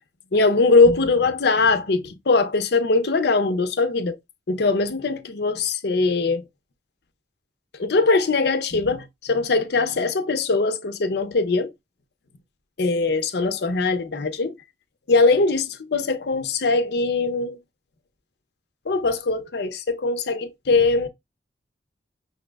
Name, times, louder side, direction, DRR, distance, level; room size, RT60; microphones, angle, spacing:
voice 1, 0.3-4.2 4.5-6.4 7.8-11.7 12.8-14.5 15.1-17.6 18.9-21.1, left 3 dB, 65° left, 0.6 m, -21 dB
5.7 x 2.1 x 3.4 m
head